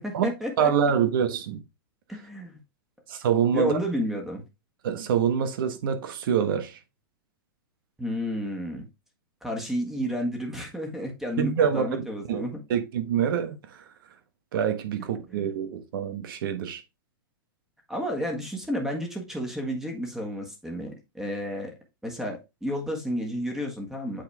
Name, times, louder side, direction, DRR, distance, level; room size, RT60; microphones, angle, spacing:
voice 1, 0.0-0.7 2.1-2.6 3.5-4.4 8.0-8.9 9.4-12.6 15.3-15.5 17.9-21.7 22.0-24.2, equal, 5° right, 1.6 m, -31 dB
voice 2, 0.6-1.6 3.1-3.8 4.8-6.8 11.4-13.8 14.5-16.8, right 8 dB, 65° right, 1.4 m, -26 dB
8.1 x 4.2 x 3.4 m
hypercardioid pair, 140°, 12 cm